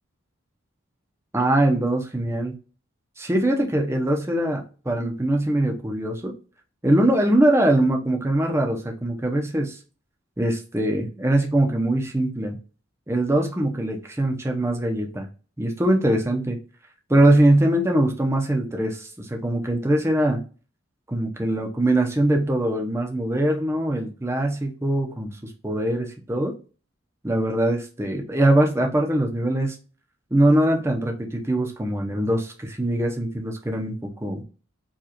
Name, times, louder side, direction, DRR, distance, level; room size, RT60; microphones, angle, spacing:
voice 1, 1.3-2.5 3.2-6.3 6.8-9.8 10.4-12.6 13.1-15.3 15.6-16.6 17.1-20.4 21.1-26.5 27.2-29.8 30.3-34.4, right 1 dB, 10° right, 2 dB, 0.6 m, -22 dB
4.7 x 2.4 x 2.9 m, 0.37 s
head